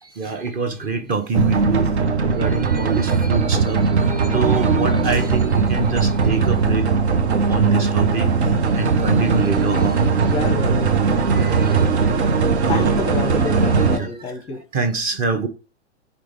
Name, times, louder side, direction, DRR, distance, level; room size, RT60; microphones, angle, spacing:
voice 1, 0.0-1.9 2.2-6.9 7.2-8.3 8.7-10.3 11.3-12.2 12.6-13.0 13.9-14.3 14.7-15.5, right 4 dB, 25° right, 0.9 m, -25 dB
sound 1, 1.3-14.0, right 4 dB, 70° right, 0.8 m, -19 dB
voice 2, 10.2-11.0 12.5-14.6, left 4 dB, 15° left, 0.7 m, -28 dB
5.0 x 4.1 x 4.6 m
figure-of-eight pair, 105°, 35 cm